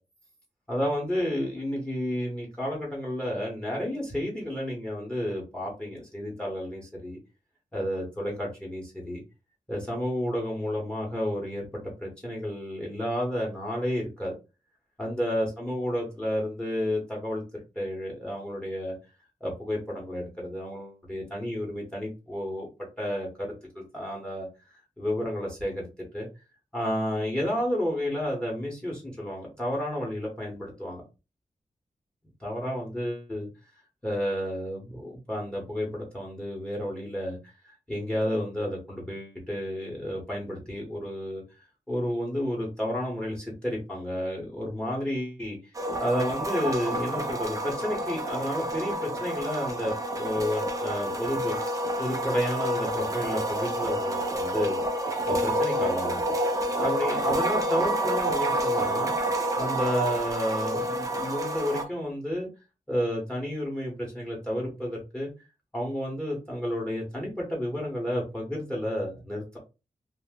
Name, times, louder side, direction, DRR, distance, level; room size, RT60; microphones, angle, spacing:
voice 1, 0.7-7.2 7.7-9.2 9.7-14.3 15.0-17.4 17.8-18.9 19.4-22.7 23.0-24.5 25.0-26.3 26.7-31.0 32.4-33.5 34.0-41.4 41.9-45.6 46.0-51.5 52.0-54.8 55.2-62.5 62.9-65.3 65.7-69.6, equal, 5° left, -2 dB, 0.9 m, -31 dB
sound 1, 45.7-61.8, right 1 dB, 25° right, 0.5 m, -28 dB
2.6 x 2.1 x 3.4 m, 0.28 s
wide cardioid pair, 150°, 13 cm